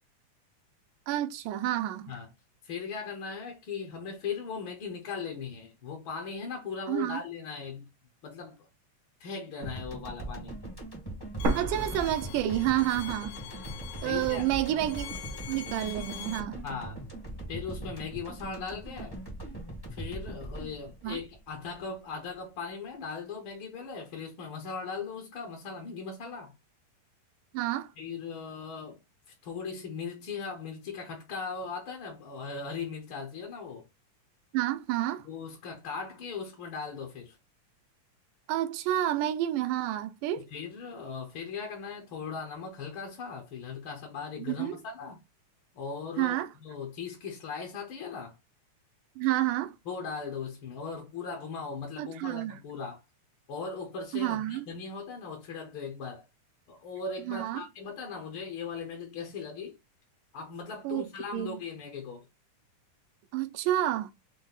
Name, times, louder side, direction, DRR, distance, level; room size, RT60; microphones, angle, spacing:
voice 1, 1.1-2.1 6.9-7.2 11.5-13.4 14.0-15.1 15.5-16.6 21.0-21.2 27.5-27.9 34.5-35.3 38.5-40.5 44.4-44.8 46.2-46.5 49.2-49.8 52.0-52.6 54.1-54.7 57.3-57.6 60.8-61.1 61.3-61.6 63.3-64.1, right 13 dB, 85° right, 2.2 m, -29 dB
voice 2, 2.6-7.8 8.2-8.7 9.2-10.6 14.0-14.5 16.6-17.0 17.5-19.2 19.9-26.5 28.0-29.0 29.4-33.9 35.2-37.4 40.5-45.2 45.7-48.4 49.8-53.0 53.5-56.2 56.7-59.8 60.3-62.2, left 5 dB, 60° left, 1.4 m, -38 dB
sound 1, 9.6-22.1, right 2 dB, 20° left, 0.6 m, -41 dB
Bowed string instrument, 11.4-16.4, left 11 dB, 75° left, 2.0 m, -44 dB
sound 2, 11.4-13.4 13.7-13.8 14.5-15.4, right 2 dB, 65° right, 1.1 m, -34 dB
6.1 x 2.2 x 3.9 m
omnidirectional pair, 3.7 m